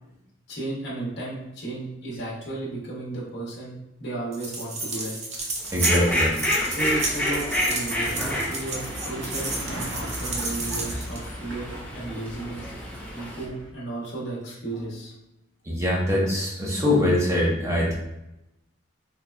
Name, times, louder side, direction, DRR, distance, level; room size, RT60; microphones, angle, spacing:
voice 1, 0.5-5.2 6.7-11.7 11.9-12.7 13.1-15.1, right 2 dB, 60° left, -5 dB, 1.0 m, -34 dB
sound 1, 4.3-11.3, right 2 dB, 35° right, 0.6 m, -32 dB
Fowl, 5.6-13.4, left 1 dB, 5° left, 0.6 m, -30 dB
voice 2, 5.7-6.4 13.2-13.3 14.8-14.9 15.7-17.9, left 1 dB, 15° right, -4 dB, 0.9 m, -23 dB
sound 2, 7.1-13.7, right 1 dB, 70° right, 0.9 m, -39 dB
3.8 x 3.1 x 2.3 m, 0.90 s
head